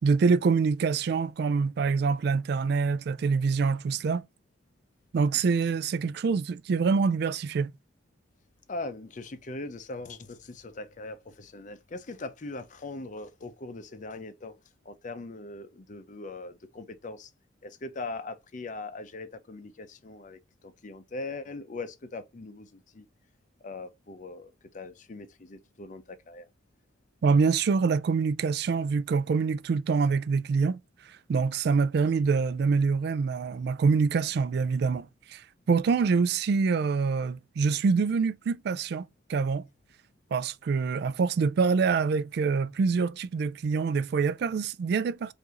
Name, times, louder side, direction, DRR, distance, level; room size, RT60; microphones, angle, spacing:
voice 1, 0.0-4.2 5.1-7.7 27.2-30.8 31.3-39.6 40.3-45.3, right 5 dB, 55° right, 0.3 m, -25 dB
voice 2, 8.7-14.5 14.9-17.3 17.6-20.4 20.8-22.7 22.9-23.1 23.6-26.5, left 3 dB, 40° left, 0.5 m, -40 dB
4.6 x 2.6 x 2.9 m
head